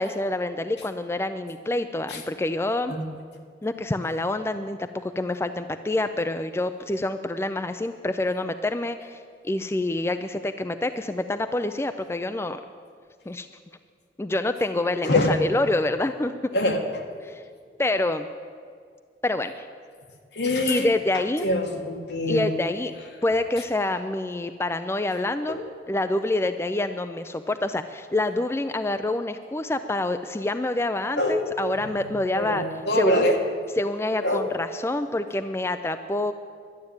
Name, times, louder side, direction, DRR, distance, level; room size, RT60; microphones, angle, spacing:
voice 1, 0.0-2.9 3.6-12.6 13.3-13.5 14.2-16.3 17.3-17.4 17.8-18.3 19.2-19.7 20.7-21.5 22.3-22.9 23.2-25.6 25.9-32.6 33.0-33.3 33.8-36.3, left 2 dB, 15° left, 9 dB, 0.4 m, -27 dB
voice 2, 15.0-15.4 16.5-17.0 20.3-20.9 21.4-22.5 25.5-25.6 31.2-31.5 32.3-33.4 34.2-34.5, left 1 dB, 75° left, 2 dB, 1.8 m, -24 dB
11.5 x 10.5 x 8.7 m, 2.1 s
head